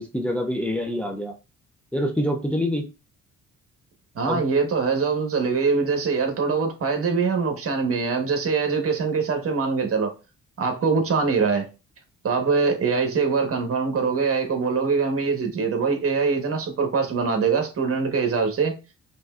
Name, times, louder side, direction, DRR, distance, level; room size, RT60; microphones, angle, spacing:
voice 1, 0.0-1.3 1.9-2.9 4.3-4.4, equal, 5° left, 0.5 m, -26 dB
voice 2, 4.1-10.1 10.6-11.7 12.2-18.7, right 5 dB, 50° right, 1.3 m, -23 dB
5.2 x 3.1 x 2.4 m
cardioid pair, 90°, 30 cm